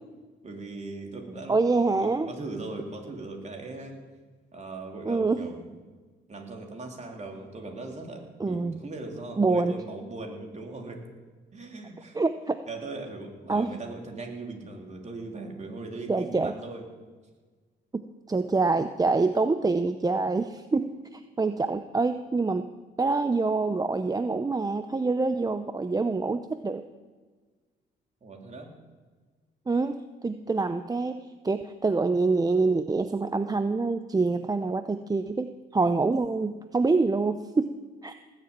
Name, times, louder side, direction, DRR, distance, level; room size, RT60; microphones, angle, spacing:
voice 1, 0.4-1.6 1.9-4.0 4.5-5.8 6.3-11.0 11.5-12.2 12.7-16.8 28.2-28.7, right 3 dB, 35° right, 2 dB, 3.4 m, -39 dB
voice 2, 1.5-2.3 5.0-5.5 8.4-8.7 9.4-9.8 12.1-12.6 13.5-13.7 16.1-16.5 17.9-18.0 18.3-22.7 23.0-26.8 29.7-37.7 38.0-38.1, right 3 dB, 20° right, 9 dB, 0.6 m, -26 dB
19.0 x 7.5 x 8.8 m, 1.4 s
cardioid pair, 90°, 20 cm